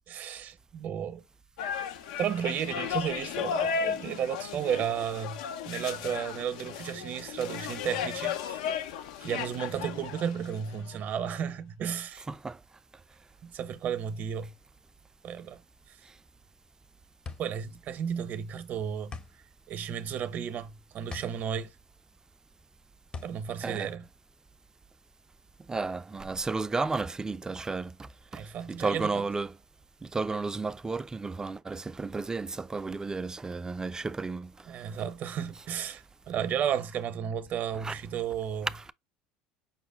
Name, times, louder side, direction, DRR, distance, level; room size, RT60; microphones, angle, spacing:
voice 1, 0.1-1.2 2.2-8.6 9.2-12.2 13.4-14.5 15.2-15.6 17.4-19.1 19.7-21.7 23.2-24.0 28.3-29.1 34.7-38.7, right 8 dB, 50° right, 0.7 m, -33 dB
sound 1, 1.6-11.3, left 7 dB, 80° left, 0.5 m, -35 dB
voice 2, 12.3-12.6 23.6-23.9 25.7-29.6 30.0-34.7 37.7-38.0 38.7-38.9, right 3 dB, 15° right, 0.4 m, -33 dB
sound 2, 16.6-24.8, left 4 dB, 25° left, 0.6 m, -46 dB
5.6 x 2.1 x 3.5 m
hypercardioid pair, 80°, 4 cm